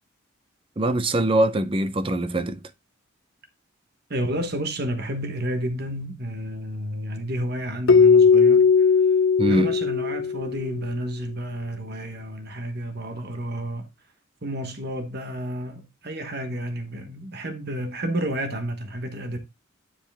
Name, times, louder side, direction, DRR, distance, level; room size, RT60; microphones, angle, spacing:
voice 1, 0.8-2.6 9.4-9.7, right 1 dB, 25° right, 0.5 m, -22 dB
voice 2, 4.1-8.7 9.4-13.9 14.4-19.4, right 1 dB, 50° right, 1.2 m, -31 dB
Keyboard (musical), 7.9-10.7, left 5 dB, 70° left, 0.5 m, -17 dB
9.9 x 4.9 x 3.4 m
head